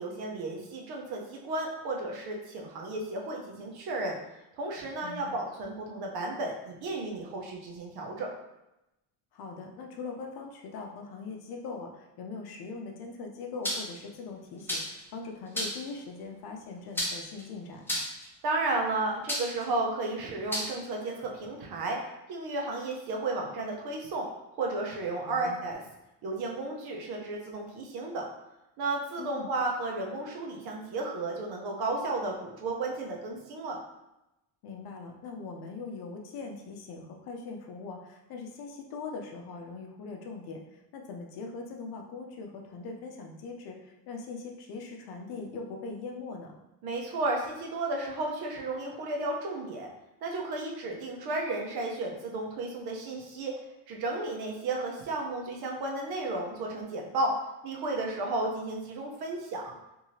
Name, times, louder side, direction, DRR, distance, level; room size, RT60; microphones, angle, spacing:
voice 1, 0.0-4.2 4.6-8.3 18.4-22.0 22.3-24.3 24.5-25.8 26.2-28.3 28.8-33.8 46.8-49.9 50.2-53.5 53.9-57.3 57.6-59.7, right 2 dB, 60° right, 0 dB, 0.8 m, -33 dB
voice 2, 5.0-5.4 9.3-18.0 25.2-25.6 29.2-29.5 34.6-46.5, left 4 dB, 60° left, 2 dB, 0.7 m, -41 dB
sound 1, 13.6-14.0 14.7-15.0 15.5-15.9 16.9-17.4 17.9-18.3 19.3-19.6 20.5-20.7, equal, 5° left, 0.7 m, -31 dB
2.8 x 2.7 x 2.7 m, 0.92 s
supercardioid pair, 90°, 42 cm